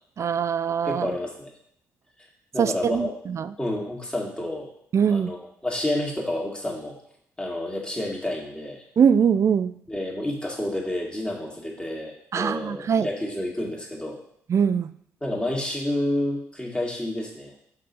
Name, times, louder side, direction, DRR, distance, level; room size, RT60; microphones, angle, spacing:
voice 1, 0.2-1.1 2.6-3.5 4.9-5.3 9.0-9.7 12.3-13.1 14.5-14.9, right 7 dB, 45° right, 13 dB, 0.4 m, -22 dB
voice 2, 0.9-1.5 2.5-3.1 3.6-4.7 5.1-7.0 7.4-8.8 9.9-14.2 15.2-17.5, left 1 dB, 15° left, -1 dB, 2.0 m, -29 dB
5.3 x 4.0 x 5.4 m, 0.67 s
hypercardioid pair, 45°, 7 cm